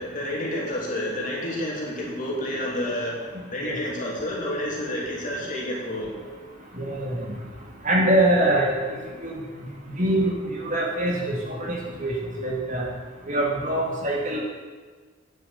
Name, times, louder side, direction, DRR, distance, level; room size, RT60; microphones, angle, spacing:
voice 1, 0.0-3.2 3.5-6.1, left 1 dB, 40° left, -4 dB, 3.2 m, -29 dB
voice 2, 6.7-7.3 7.8-8.8 9.2-9.4 9.9-12.1 12.4-12.9 13.3-14.4, right 1 dB, 40° right, -1 dB, 2.2 m, -24 dB
9.4 x 7.5 x 8.0 m, 1.4 s
head